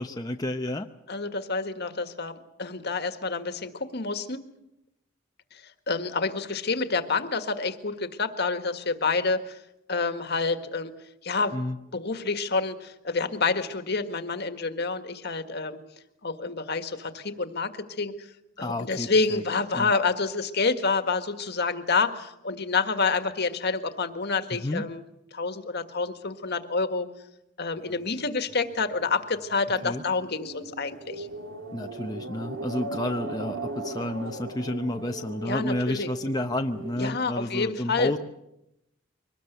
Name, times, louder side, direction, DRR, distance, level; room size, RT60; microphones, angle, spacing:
voice 1, 0.0-0.9 11.5-11.8 18.6-19.4 19.7-19.9 24.6-24.9 29.8-30.0 31.7-38.2, left 1 dB, 20° left, 4 dB, 0.8 m, -30 dB
voice 2, 1.1-4.4 5.5-9.6 9.9-10.9 11.2-11.5 11.9-15.8 16.2-18.3 18.6-25.0 25.3-27.1 27.6-31.3 35.5-36.1 37.0-38.1, left 4 dB, 55° left, 8 dB, 1.8 m, -28 dB
sound 1, 27.7-37.0, right 2 dB, 85° right, 2.6 m, -38 dB
23.5 x 19.5 x 8.2 m, 0.87 s
head